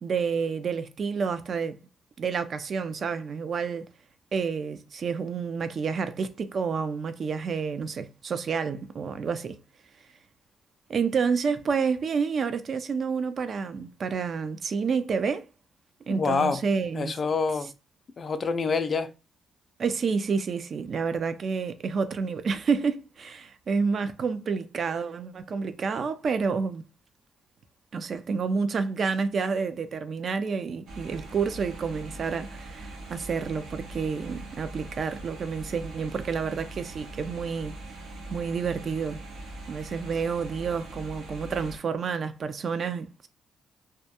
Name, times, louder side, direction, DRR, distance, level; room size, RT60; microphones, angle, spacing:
voice 1, 0.0-1.8 2.2-3.9 4.3-9.6 10.9-15.5 16.1-17.1 19.8-26.8 27.9-37.7 38.3-39.2 39.7-43.3, right 5 dB, 55° right, 0.3 m, -29 dB
voice 2, 16.1-16.6 16.9-17.7 18.2-19.1, left 5 dB, 45° left, 0.3 m, -26 dB
sound 1, 30.9-41.8, right 2 dB, 85° right, 0.7 m, -42 dB
2.2 x 2.2 x 2.8 m
cardioid pair, 75°, 0 cm